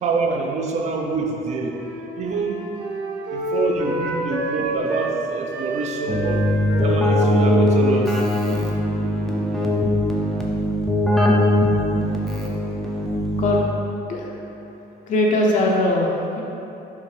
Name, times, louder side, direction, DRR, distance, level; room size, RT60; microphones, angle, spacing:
voice 1, 0.0-1.8 2.2-2.6 3.3-6.5 6.8-8.3, right 4 dB, 40° right, 1 dB, 0.6 m, -26 dB
Wind instrument woodwind instrument, 1.2-5.2 5.5-10.0, right 1 dB, 90° right, 1.0 m, -29 dB
Keyboard (musical), 6.1-13.9, left 1 dB, ahead, 0.5 m, -21 dB
voice 2, 15.1-16.1, left 1 dB, 50° left, -2 dB, 0.7 m, -20 dB
5.7 x 3.9 x 4.8 m, 2.9 s
cardioid pair, 175°, 17 cm